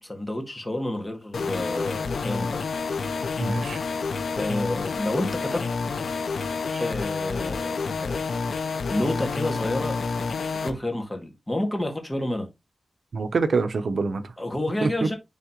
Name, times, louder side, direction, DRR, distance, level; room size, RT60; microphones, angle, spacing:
voice 1, 0.0-2.6 4.4-5.6 6.8-8.4 8.9-10.0 10.6-12.5 14.4-15.2, left 1 dB, 15° left, 1.9 m, -29 dB
sound 1, 1.3-10.7, left 4 dB, 85° left, 0.8 m, -29 dB
voice 2, 3.4-3.8 6.7-6.8 13.1-14.3 14.8-15.1, right 4 dB, 70° right, 0.8 m, -26 dB
9.4 x 3.6 x 3.0 m
wide cardioid pair, 125°, 0 cm